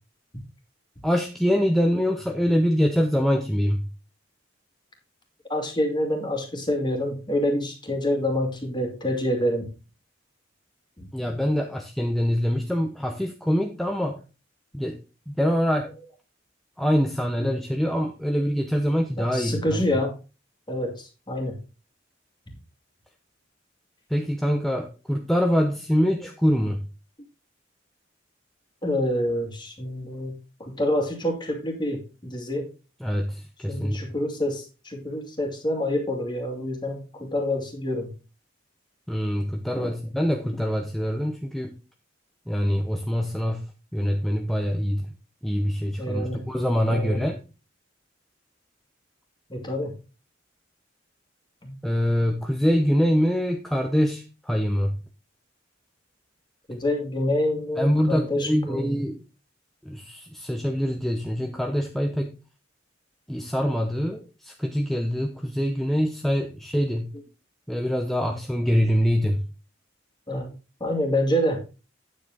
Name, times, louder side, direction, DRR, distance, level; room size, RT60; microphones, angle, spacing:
voice 1, 1.0-3.9 11.1-14.2 14.7-15.0 15.3-15.9 16.8-19.8 24.1-26.9 33.0-34.0 39.1-41.8 42.5-43.6 43.9-45.1 45.4-47.4 51.8-55.0 57.8-59.2 59.8-62.4 63.3-67.1 67.7-69.5, equal, ahead, 2 dB, 0.7 m, -24 dB
voice 2, 5.5-9.7 11.0-11.1 17.4-17.5 19.2-20.1 20.7-21.6 28.8-30.3 30.6-32.7 33.7-38.1 39.8-39.9 46.0-46.4 46.9-47.2 49.5-49.9 51.6-51.7 56.7-59.0 68.3-68.4 70.3-70.5 70.8-71.6, left 1 dB, 25° left, 3 dB, 2.3 m, -27 dB
9.2 x 7.6 x 3.8 m, 0.31 s
head